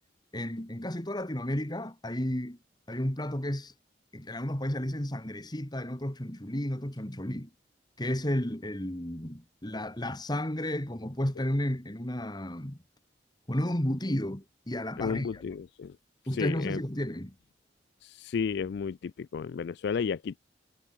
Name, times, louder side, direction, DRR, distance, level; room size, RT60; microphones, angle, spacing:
voice 1, 0.3-2.6 2.9-3.7 4.1-7.5 8.0-12.8 13.5-15.4 16.3-17.3, left 1 dB, 25° left, 2.5 m, -32 dB
voice 2, 15.0-16.0 16.3-16.8 18.0-20.4, left 6 dB, 65° left, 0.3 m, -32 dB
head